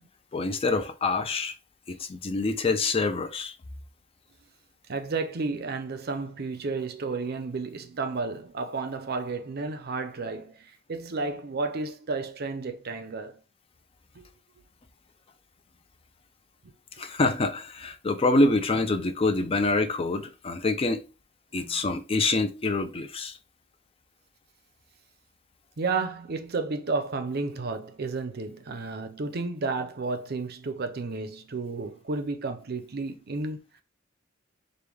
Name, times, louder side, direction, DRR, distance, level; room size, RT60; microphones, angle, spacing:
voice 1, 0.3-1.5 1.9-3.6 17.0-21.0 21.5-23.4, left 3 dB, 30° left, 0.4 m, -26 dB
voice 2, 4.9-13.4 14.2-14.3 21.5-21.9 25.8-33.8, right 3 dB, 50° right, 0.6 m, -32 dB
4.9 x 2.2 x 3.4 m
head